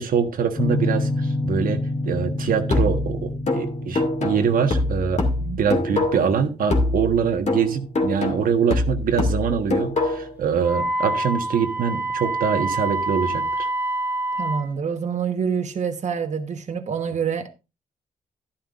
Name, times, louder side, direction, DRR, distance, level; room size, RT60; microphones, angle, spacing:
voice 1, 0.0-5.2 5.6-13.7, right 7 dB, 80° right, 1.4 m, -24 dB
sound 1, 0.6-9.3, left 1 dB, 20° left, 1.1 m, -29 dB
sound 2, 2.7-6.4 6.7-10.4, left 2 dB, 55° left, 2.2 m, -24 dB
Wind instrument woodwind instrument, 10.6-14.7, right 2 dB, 10° right, 1.3 m, -26 dB
voice 2, 14.4-17.5, right 6 dB, 55° right, 1.2 m, -26 dB
11.5 x 11.5 x 2.5 m
cardioid pair, 90°, 14 cm